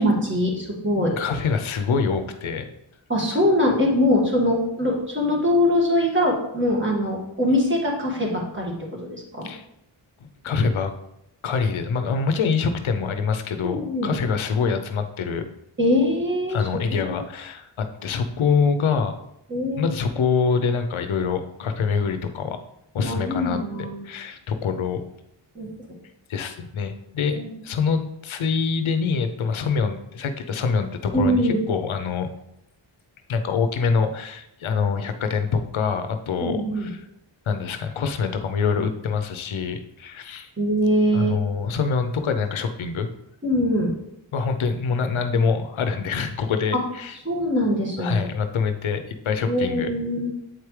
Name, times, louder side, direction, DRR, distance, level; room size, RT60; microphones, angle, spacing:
voice 1, 0.0-1.1 3.1-9.5 13.6-14.1 15.8-16.6 16.9-17.1 19.5-19.9 23.0-24.0 25.6-25.7 27.3-27.5 31.1-31.6 36.4-36.9 40.6-41.4 43.4-43.9 47.3-48.3 49.4-50.3, left 1 dB, 25° right, -2 dB, 1.8 m, -22 dB
voice 2, 1.2-2.7 9.4-9.6 10.2-10.9 11.4-15.4 16.5-19.2 19.7-22.6 22.9-25.0 26.3-32.3 33.3-37.1 37.5-40.5 41.1-43.1 44.3-47.2 48.0-49.9, left 5 dB, 90° left, 8 dB, 0.7 m, -25 dB
7.9 x 4.8 x 3.2 m, 0.81 s
wide cardioid pair, 110°, 47 cm